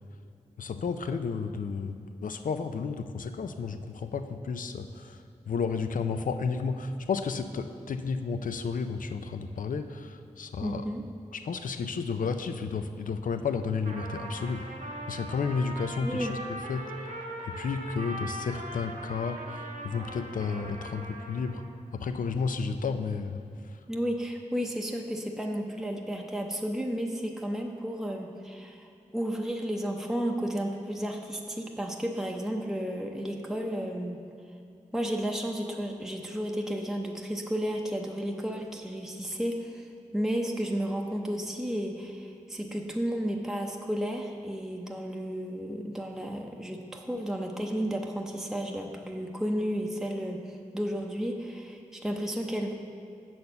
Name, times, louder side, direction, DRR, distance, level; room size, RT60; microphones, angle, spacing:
voice 1, 0.6-1.9 2.2-10.9 11.3-14.6 15.1-16.4 16.7-16.8 17.5-21.6 21.9-23.4 23.7-23.8, left 5 dB, 80° left, 8 dB, 0.4 m, -32 dB
voice 2, 10.6-11.0 16.0-16.3 23.9-28.9 29.1-34.2 34.9-52.7, equal, 5° right, 1 dB, 0.6 m, -32 dB
Trumpet, 13.8-21.7, right 1 dB, 80° right, 1.0 m, -40 dB
7.0 x 4.3 x 6.6 m, 2.5 s
wide cardioid pair, 55°, 14 cm